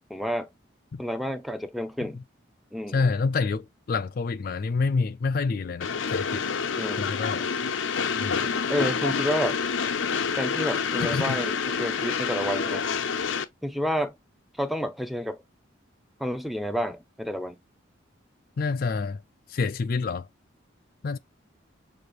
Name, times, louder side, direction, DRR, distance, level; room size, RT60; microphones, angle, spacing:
voice 1, 0.1-0.5 1.0-2.2 2.7-3.1 6.8-7.1 8.4-9.6 10.4-12.8 13.6-14.1 14.6-15.4 16.2-17.6, equal, ahead, 0.6 m, -30 dB
voice 2, 2.9-6.4 7.0-7.5 8.2-8.4 11.0-11.4 18.6-19.2 19.5-20.3 21.0-21.2, left 4 dB, 50° left, 0.4 m, -27 dB
Train, 5.8-13.4, left 6 dB, 85° left, 0.6 m, -27 dB
6.6 x 2.6 x 3.0 m
head